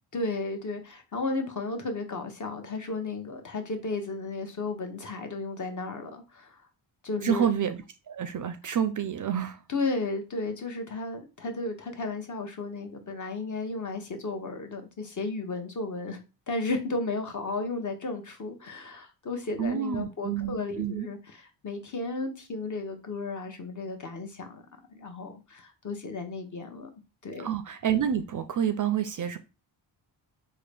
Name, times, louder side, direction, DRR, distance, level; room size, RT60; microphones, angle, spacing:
voice 1, 0.1-6.6 7.0-7.5 9.7-16.2 16.5-24.6 24.9-26.9 27.2-27.5, left 3 dB, 40° left, 0.9 m, -34 dB
voice 2, 7.2-9.6 19.6-21.1 27.4-29.4, right 8 dB, 45° right, 0.4 m, -28 dB
3.7 x 2.1 x 3.3 m
cardioid pair, 70°, 45 cm